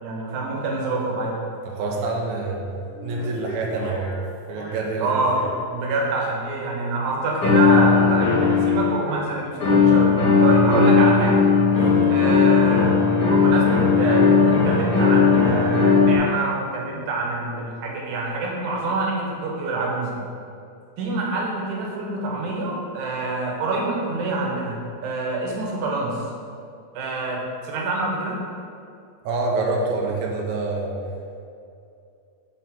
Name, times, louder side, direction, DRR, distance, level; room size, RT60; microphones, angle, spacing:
voice 1, 0.0-1.4 5.0-5.4 5.7-11.5 12.1-13.0 13.2-20.2 21.0-26.2 26.9-28.4, right 2 dB, 70° right, -2 dB, 2.2 m, -26 dB
voice 2, 1.6-2.7 3.0-4.1 4.5-5.1 11.8-12.1 29.2-30.9, right 3 dB, 90° right, -1 dB, 1.6 m, -26 dB
sound 1, 1.9-2.0 3.1-4.2 4.6-5.5 7.4-8.9 9.6-16.2, left 5 dB, 55° left, 1.7 m, -18 dB
7.5 x 4.1 x 3.6 m, 2.5 s
omnidirectional pair, 4.1 m